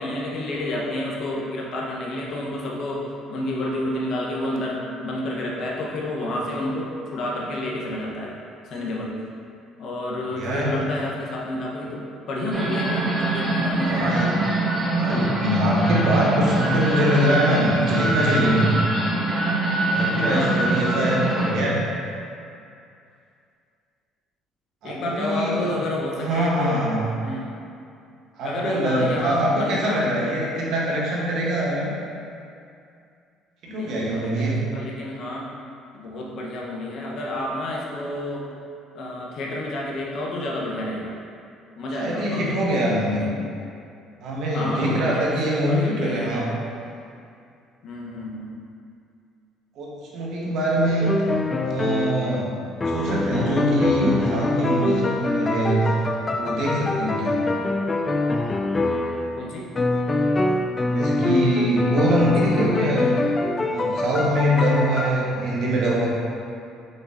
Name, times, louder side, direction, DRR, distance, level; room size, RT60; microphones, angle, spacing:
voice 1, 0.0-8.3 8.7-9.1 9.8-14.3 20.3-20.6 24.8-26.8 27.2-27.5 28.4-30.0 33.7-35.4 35.9-38.4 38.9-41.1 41.8-42.6 43.1-43.4 44.5-45.2 45.7-46.5 47.8-48.5 50.7-51.2 59.4-59.7 62.2-62.5, left 1 dB, 60° left, -3 dB, 0.9 m, -30 dB
voice 2, 10.3-10.9 13.8-14.3 15.0-18.8 19.9-21.8 24.8-25.7 26.2-27.0 28.4-31.9 33.6-34.6 42.0-43.3 44.2-46.5 49.8-49.9 50.1-51.2 51.6-52.5 52.9-55.8 56.3-57.4 60.8-63.2 63.7-66.1, equal, 70° right, -4 dB, 1.0 m, -23 dB
sound 1, 12.5-21.5, right 2 dB, 35° right, 1.4 m, -24 dB
sound 2, 51.0-52.5 52.8-59.4 59.7-65.1, left 2 dB, 25° left, 0.3 m, -24 dB
5.2 x 4.0 x 2.6 m, 2.5 s
supercardioid pair, 70°, 0 cm